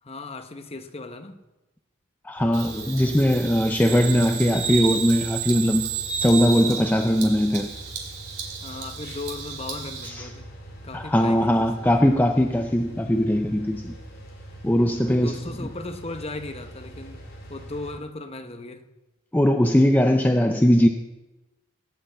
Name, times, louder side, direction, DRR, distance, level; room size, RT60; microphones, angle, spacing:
voice 1, 0.0-1.4 8.6-10.5 10.8-12.0 14.9-18.9, left 2 dB, 25° left, 8 dB, 0.9 m, -37 dB
voice 2, 2.2-5.9 6.2-7.7 10.0-10.3 10.9-14.0 14.6-15.4 19.3-20.9, equal, 10° left, 5 dB, 0.5 m, -20 dB
sound 1, 2.4-17.9, right 1 dB, 45° left, 3.0 m, -43 dB
Bird vocalization bird call bird song, 2.5-10.1, right 6 dB, 90° right, 2.7 m, -32 dB
17.0 x 5.7 x 8.3 m, 1.1 s
head